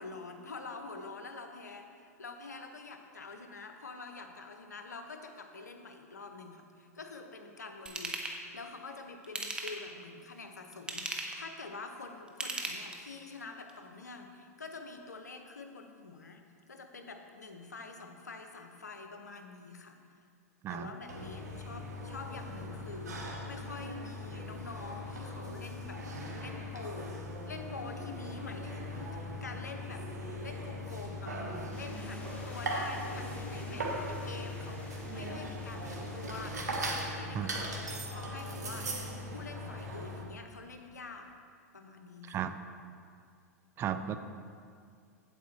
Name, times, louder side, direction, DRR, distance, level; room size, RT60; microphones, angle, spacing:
voice 1, 0.0-20.0 20.7-26.0 26.4-30.1 30.4-31.5 31.7-41.3 41.7-42.4, left 3 dB, 90° left, 6 dB, 0.9 m, -46 dB
Ratchet pawl / Tools, 7.9-8.4 9.2-9.9 10.7-11.4 12.3-13.2 13.7-13.8, right 2 dB, 10° right, 1.0 m, -37 dB
sound 1, 21.1-40.2, equal, 80° right, 1.5 m, -39 dB
sound 2, 31.7-36.9, left 1 dB, 15° left, 1.6 m, -51 dB
voice 2, 43.8-44.2, right 9 dB, 25° right, 10 dB, 0.4 m, -34 dB
8.4 x 8.4 x 4.3 m, 2.2 s
hypercardioid pair, 105°, 9 cm